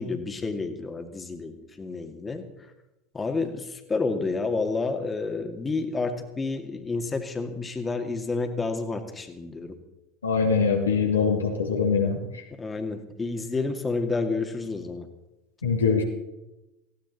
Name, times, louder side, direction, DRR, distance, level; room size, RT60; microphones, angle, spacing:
voice 1, 0.0-2.5 3.1-9.8 12.6-15.1, left 3 dB, 20° left, 5 dB, 2.2 m, -30 dB
voice 2, 10.2-12.2 15.6-16.0, left 5 dB, 85° left, 1 dB, 2.5 m, -23 dB
18.5 x 15.5 x 4.2 m, 0.95 s
figure-of-eight pair, 75°, 0 cm